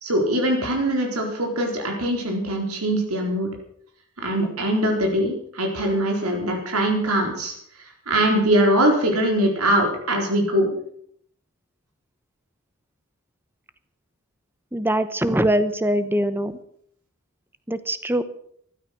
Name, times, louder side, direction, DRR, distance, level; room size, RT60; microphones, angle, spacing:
voice 1, 0.0-3.5 4.2-7.5 8.1-10.7, right 1 dB, 75° right, 1 dB, 4.2 m, -22 dB
voice 2, 14.7-16.5 17.7-18.2, right 1 dB, 10° right, 12 dB, 1.0 m, -22 dB
15.5 x 12.5 x 6.0 m, 0.65 s
head